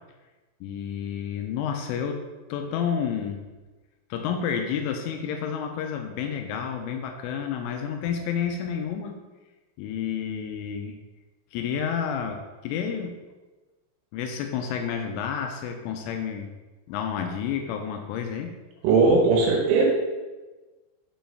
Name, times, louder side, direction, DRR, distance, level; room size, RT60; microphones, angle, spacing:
voice 1, 0.6-3.5 4.1-9.2 9.8-11.0 11.5-13.2 14.1-16.5 16.9-18.6, left 7 dB, 80° left, 5 dB, 3.0 m, -30 dB
voice 2, 18.8-19.9, right 4 dB, 75° right, 0 dB, 3.3 m, -19 dB
7.7 x 7.0 x 3.3 m, 1.2 s
omnidirectional pair, 5.9 m